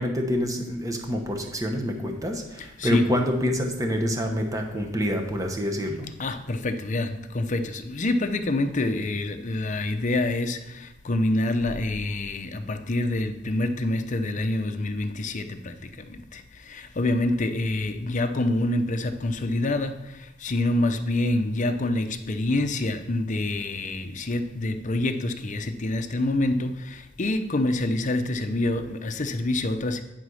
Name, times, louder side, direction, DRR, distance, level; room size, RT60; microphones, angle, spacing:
voice 1, 0.0-6.1, equal, 20° right, 3 dB, 1.0 m, -27 dB
voice 2, 2.6-3.1 6.2-16.4 16.7-19.9 20.4-30.0, left 2 dB, 40° left, 8 dB, 0.6 m, -26 dB
9.7 x 4.1 x 6.3 m, 0.95 s
head